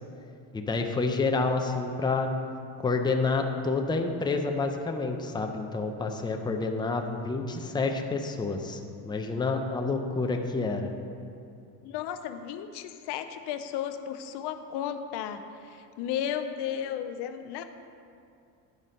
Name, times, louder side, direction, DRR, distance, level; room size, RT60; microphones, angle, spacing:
voice 1, 0.5-2.3 2.8-10.9, left 3 dB, 10° left, 3 dB, 0.6 m, -28 dB
voice 2, 11.8-17.6, left 9 dB, 75° left, 9 dB, 0.6 m, -34 dB
9.5 x 5.4 x 5.2 m, 2.5 s
cardioid pair, 105°, 41 cm